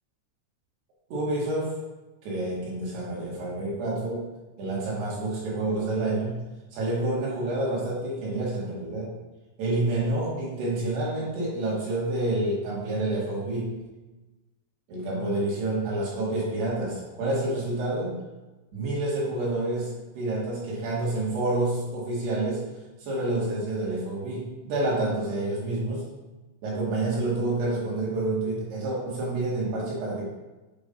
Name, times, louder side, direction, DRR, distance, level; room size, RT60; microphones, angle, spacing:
voice 1, 1.1-1.8 2.2-4.3 4.6-6.5 6.7-9.1 9.6-13.8 14.9-18.1 18.7-22.7 23.0-26.1 26.6-30.3, right 2 dB, 65° right, -6 dB, 3.9 m, -28 dB
8.1 x 3.1 x 5.3 m, 1.1 s
omnidirectional pair, 5.3 m